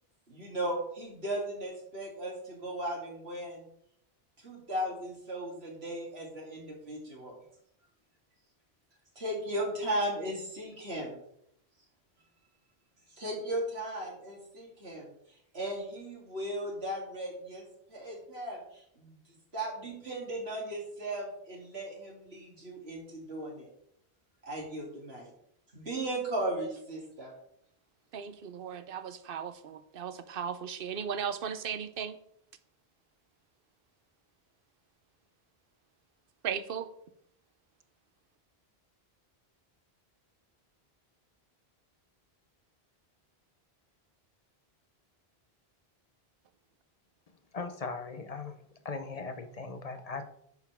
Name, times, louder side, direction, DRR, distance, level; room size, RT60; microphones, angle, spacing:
voice 1, 0.3-3.7 4.4-7.3 9.1-11.2 13.1-15.1 15.5-19.2 19.5-23.7 24.4-25.3 25.7-27.3, right 1 dB, 80° right, 3.1 m, -36 dB
voice 2, 28.1-32.2 36.4-36.9, right 7 dB, 65° right, 0.9 m, -36 dB
voice 3, 47.5-48.6 48.8-50.2, left 4 dB, 40° left, 0.8 m, -38 dB
10.5 x 7.1 x 3.5 m
omnidirectional pair, 1.0 m